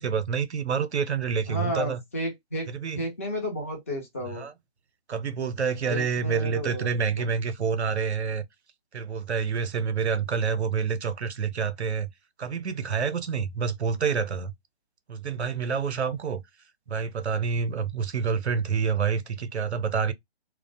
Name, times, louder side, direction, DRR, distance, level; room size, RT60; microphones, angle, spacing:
voice 1, 0.0-2.0 2.7-3.0 4.3-4.5 5.1-8.4 8.9-12.1 12.4-14.5 15.1-16.4 16.9-20.1, right 6 dB, 85° right, 0.6 m, -28 dB
voice 2, 1.5-2.7 2.9-4.5 5.9-7.3, equal, 15° left, 0.4 m, -32 dB
2.4 x 2.1 x 2.5 m
figure-of-eight pair, 140°, 32 cm